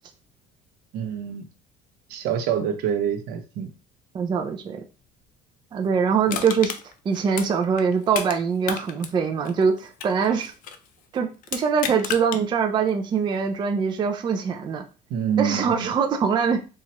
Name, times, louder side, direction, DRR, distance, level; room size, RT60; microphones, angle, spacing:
voice 1, 0.9-1.4 2.1-3.7 6.3-6.4 15.1-15.9, right 8 dB, 65° right, 6 dB, 0.7 m, -26 dB
voice 2, 4.1-4.8 5.7-6.7 7.1-10.5 11.1-14.8 15.4-16.6, right 6 dB, 25° right, 4 dB, 0.4 m, -23 dB
Crushing, 6.3-8.4 8.6-10.9 11.4-12.4 12.9-13.0, left 8 dB, 55° left, 0.5 m, -32 dB
4.2 x 2.3 x 2.9 m, 0.33 s
cardioid pair, 130°, 17 cm